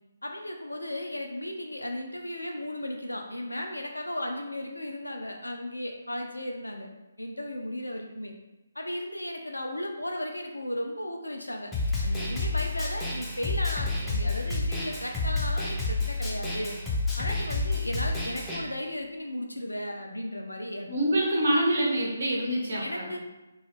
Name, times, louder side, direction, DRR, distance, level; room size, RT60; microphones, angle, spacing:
voice 1, 0.2-6.9 7.2-8.3 8.8-11.7 12.0-16.8 17.2-20.9 22.8-23.2, left 1 dB, 85° left, 2 dB, 0.4 m, -35 dB
Snare drum, 11.7-18.6, left 2 dB, 5° left, 0.4 m, -29 dB
voice 2, 20.9-23.2, right 1 dB, 55° right, -3 dB, 0.7 m, -26 dB
2.2 x 2.0 x 3.2 m, 1.1 s
figure-of-eight pair, 140°, 0 cm